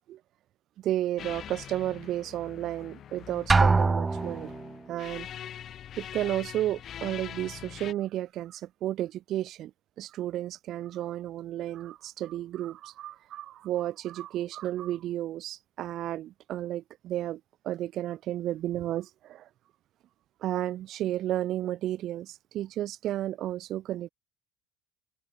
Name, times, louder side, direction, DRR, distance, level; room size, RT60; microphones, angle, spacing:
voice 1, 0.8-4.5 4.9-5.3 6.0-9.7 10.0-19.5 20.4-24.1, right 13 dB, 55° right, 7.3 m, -32 dB
sound 1, 1.2-7.9, left 10 dB, 45° left, 6.4 m, -43 dB
Drum, 3.5-4.7, right 4 dB, 20° right, 1.9 m, -23 dB
open air
supercardioid pair, 95°, 0 cm